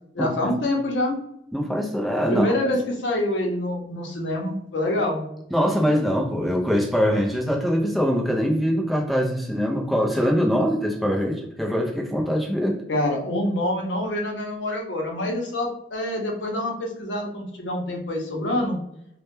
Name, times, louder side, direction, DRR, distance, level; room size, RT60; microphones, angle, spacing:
voice 1, 0.1-1.2 2.3-5.2 12.9-18.8, left 1 dB, 85° left, 1 dB, 0.6 m, -26 dB
voice 2, 1.5-2.6 5.5-12.8, equal, ahead, -1 dB, 0.3 m, -23 dB
2.1 x 2.1 x 3.0 m, 0.78 s
head